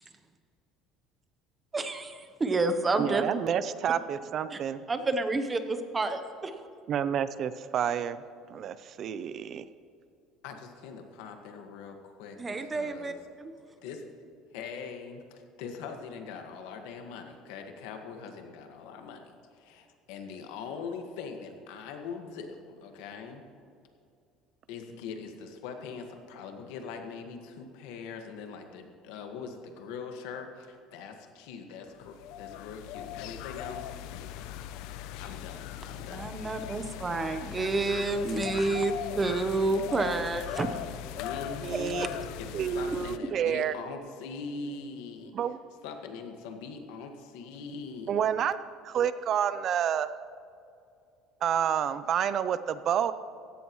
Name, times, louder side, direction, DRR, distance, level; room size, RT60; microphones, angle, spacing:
voice 1, 1.7-3.2 4.5-4.6 4.9-6.5 12.4-13.5 36.1-40.7 42.0-42.1, right 3 dB, 20° right, 8 dB, 0.9 m, -29 dB
voice 2, 3.0-4.8 6.9-8.2 8.5-9.6 41.6-42.1 42.5-43.7 45.3-45.6 48.1-48.6 48.8-50.1 51.4-53.1, right 9 dB, 40° right, 14 dB, 0.5 m, -29 dB
voice 3, 10.4-13.2 13.8-14.0 14.5-23.4 24.7-34.5 34.8-36.3 37.3-37.7 41.2-42.1 42.4-45.3 45.8-48.2, left 5 dB, 90° left, 4 dB, 1.7 m, -42 dB
sound 1, 32.0-43.2, left 11 dB, 75° left, 0.6 m, -39 dB
16.5 x 15.5 x 3.2 m, 2.5 s
cardioid pair, 145°, 0 cm